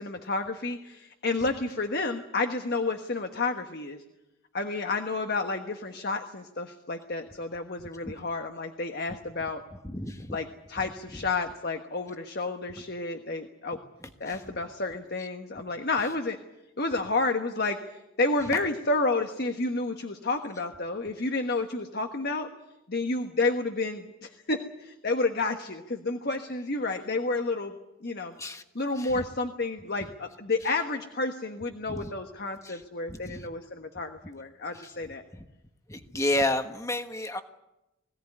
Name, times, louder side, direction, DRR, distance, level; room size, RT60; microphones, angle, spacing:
voice 1, 0.0-4.0 4.5-9.6 10.3-13.8 14.2-16.4 16.8-17.9 18.2-22.5 22.9-27.7 28.0-28.3 28.7-35.2, left 3 dB, 45° left, 5 dB, 1.3 m, -30 dB
voice 2, 9.8-10.4 10.8-11.2 14.0-14.4 15.2-15.3 28.4-28.6 29.0-29.2 30.0-30.1 31.9-32.1 32.6-32.8 33.1-33.5 34.7-34.9 35.3-35.4 35.9-37.4, left 1 dB, 15° left, 7 dB, 1.3 m, -32 dB
21.0 x 17.0 x 9.8 m, 0.94 s
head